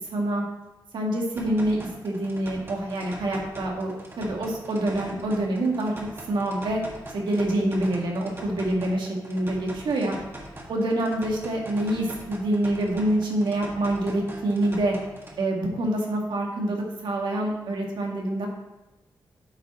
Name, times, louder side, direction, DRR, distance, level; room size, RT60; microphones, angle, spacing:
voice 1, 0.1-0.4 0.9-5.9 6.3-6.8 7.1-10.2 10.7-14.9 15.4-18.5, right 1 dB, 90° right, 0 dB, 1.8 m, -26 dB
sound 1, 1.4-15.4, right 1 dB, 30° right, 1.6 m, -42 dB
8.5 x 5.4 x 4.2 m, 1.0 s
wide cardioid pair, 105°, 8 cm